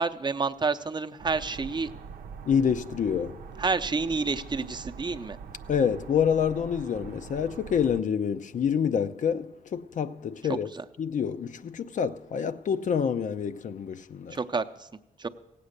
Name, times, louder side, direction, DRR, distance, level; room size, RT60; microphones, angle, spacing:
voice 1, 0.0-1.9 3.6-5.4 10.4-10.8 14.3-14.9 15.2-15.3, right 4 dB, 30° right, 0.6 m, -29 dB
sound 1, 1.2-8.0, right 6 dB, 85° right, 0.6 m, -43 dB
voice 2, 2.5-3.4 5.7-10.7 11.0-14.4, left 7 dB, 60° left, 0.6 m, -27 dB
16.5 x 8.5 x 6.6 m
cardioid pair, 70°, 15 cm